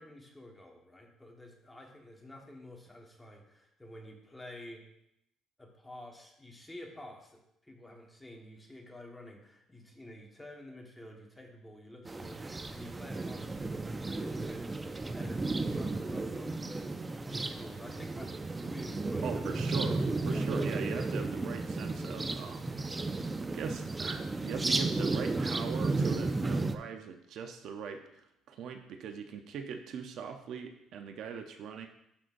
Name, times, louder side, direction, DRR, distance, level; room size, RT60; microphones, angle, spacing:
voice 1, 0.0-4.8 5.6-16.9 17.2-19.3 20.3-20.5, left 1 dB, 10° left, 1 dB, 1.4 m, -50 dB
sound 1, 12.0-26.8, right 3 dB, 15° right, 0.5 m, -33 dB
voice 2, 19.2-31.9, right 6 dB, 65° right, 6 dB, 0.7 m, -41 dB
11.5 x 5.6 x 2.6 m, 0.78 s
cardioid pair, 110°, 0 cm